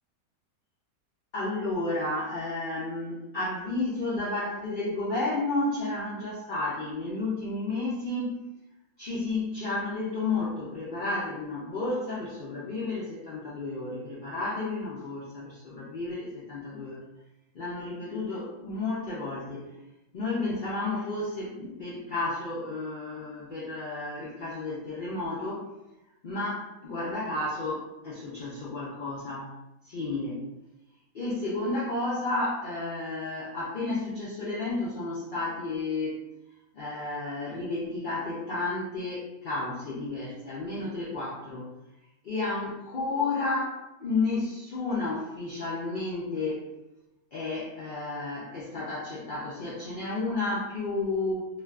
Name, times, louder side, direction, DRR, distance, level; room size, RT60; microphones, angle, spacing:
voice 1, 1.3-8.4 9.0-17.0 17.5-19.8 20.1-25.7 26.2-29.5 29.8-30.4 31.1-36.2 36.7-41.7 42.2-46.7 47.3-51.5, left 2 dB, 85° left, -7 dB, 0.4 m, -32 dB
2.6 x 2.3 x 2.2 m, 0.93 s
omnidirectional pair, 1.5 m